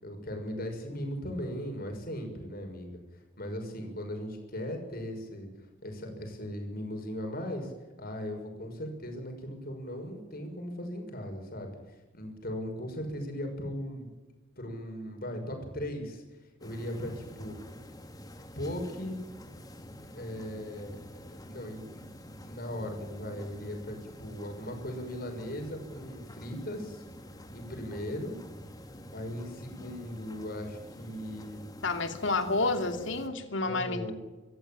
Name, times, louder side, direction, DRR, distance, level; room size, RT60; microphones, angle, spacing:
voice 1, 0.0-3.0 3.4-5.5 5.8-7.7 8.0-11.8 12.1-14.1 14.6-16.2 16.6-17.6 18.6-19.2 20.1-27.0 27.5-28.4 29.1-31.7 33.6-34.1, equal, 50° left, 4 dB, 6.3 m, -38 dB
sound 1, 16.6-33.3, equal, 20° left, 2.5 m, -48 dB
voice 2, 31.8-34.1, left 3 dB, 75° left, 7 dB, 2.7 m, -30 dB
25.5 x 15.0 x 8.9 m, 1.2 s
head